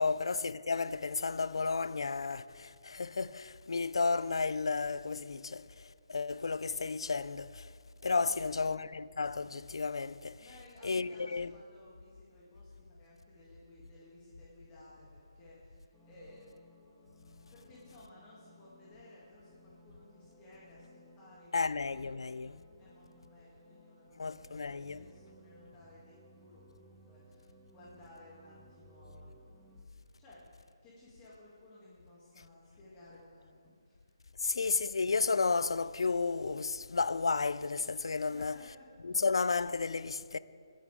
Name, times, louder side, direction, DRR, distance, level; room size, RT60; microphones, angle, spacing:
voice 1, 0.0-7.7 8.0-10.5 10.8-11.5 21.5-22.6 24.2-25.0 34.4-38.6 39.0-40.4, left 4 dB, 70° left, 0.5 m, -32 dB
voice 2, 8.1-8.7 10.4-16.9 17.5-22.5 22.8-29.5 30.2-30.4 30.8-34.1 34.4-34.9 38.3-39.2, left 1 dB, 20° left, 2.5 m, -58 dB
sound 1, 15.9-29.8, right 1 dB, ahead, 1.0 m, -61 dB
20.5 x 8.5 x 3.6 m
figure-of-eight pair, 150°, 3 cm